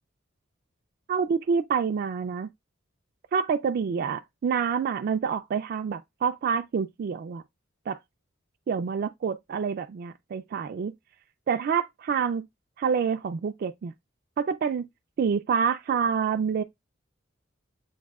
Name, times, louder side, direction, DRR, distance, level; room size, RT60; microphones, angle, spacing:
voice 1, 1.1-2.5 3.3-7.4 7.9-8.0 8.7-10.9 11.5-12.5 12.8-13.9 14.4-14.9 15.2-16.6, right 6 dB, 50° right, 0.3 m, -27 dB
7.2 x 2.6 x 2.3 m
head